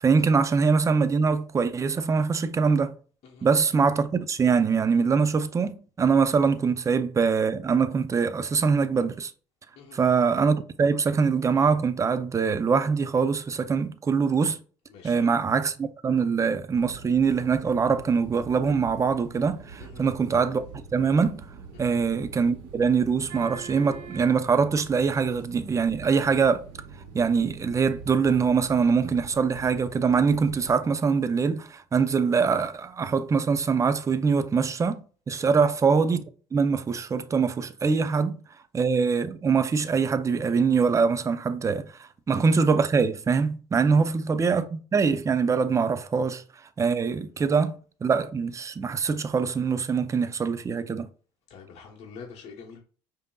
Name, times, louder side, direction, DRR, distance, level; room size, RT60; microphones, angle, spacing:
voice 1, 0.0-2.9 3.4-9.3 9.9-14.6 15.0-20.6 20.9-21.5 21.8-26.6 27.1-36.2 36.5-38.4 38.7-46.4 46.8-51.1, right 5 dB, 25° right, 0.5 m, -23 dB
voice 2, 14.9-15.3 19.8-20.0 21.7-21.9 35.4-35.6 43.9-44.1 51.5-52.8, left 5 dB, 55° left, 1.0 m, -46 dB
sound 1, 16.7-30.7, right 5 dB, 80° right, 1.2 m, -44 dB
5.1 x 2.6 x 2.3 m
supercardioid pair, 75°, 13 cm